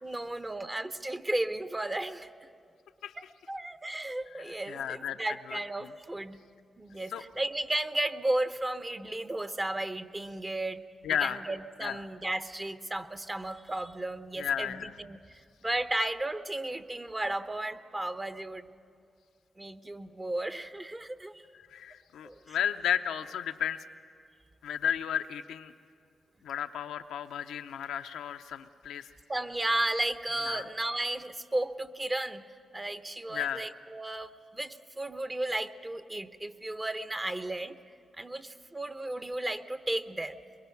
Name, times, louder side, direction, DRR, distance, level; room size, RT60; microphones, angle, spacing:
voice 1, 0.0-2.3 3.5-6.4 6.8-10.8 11.2-18.7 19.6-21.4 22.2-22.6 29.3-32.4 32.7-37.8 38.2-40.4, right 1 dB, 25° right, 10 dB, 0.9 m, -34 dB
voice 2, 4.3-5.2 5.5-5.6 7.1-7.2 11.0-11.5 11.8-12.0 14.4-14.9 21.7-23.9 24.6-25.7 26.4-29.1 30.5-30.7 33.3-33.6, left 9 dB, 90° left, 8 dB, 0.7 m, -33 dB
23.0 x 22.5 x 5.8 m, 2.3 s
cardioid pair, 55°, 0 cm